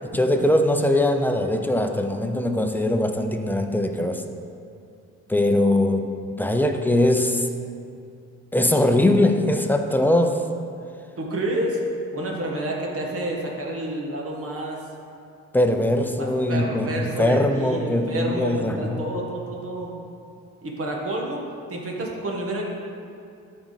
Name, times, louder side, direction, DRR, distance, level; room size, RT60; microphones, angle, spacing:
voice 1, 0.0-4.2 5.3-7.5 8.5-10.4 15.5-19.1, left 1 dB, 5° left, 4 dB, 0.7 m, -21 dB
voice 2, 11.2-11.8 12.1-14.8 16.2-19.9 20.6-21.4 21.7-22.6, right 1 dB, 50° right, -1 dB, 1.7 m, -29 dB
12.0 x 4.8 x 4.1 m, 2.5 s
cardioid pair, 90°, 30 cm